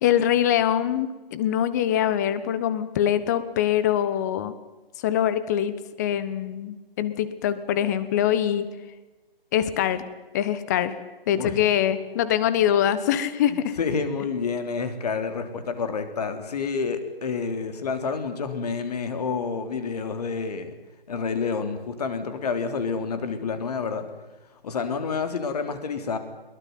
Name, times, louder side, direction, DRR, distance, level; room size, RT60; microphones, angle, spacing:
voice 1, 0.0-4.5 5.0-8.7 9.5-10.0 10.3-10.9 11.3-13.8, left 10 dB, 20° left, 14 dB, 1.2 m, -23 dB
voice 2, 13.8-20.7 21.1-24.1 24.6-26.2, left 5 dB, 40° left, 9 dB, 3.5 m, -28 dB
22.0 x 22.0 x 9.4 m, 1.2 s
hypercardioid pair, 160°, 30 cm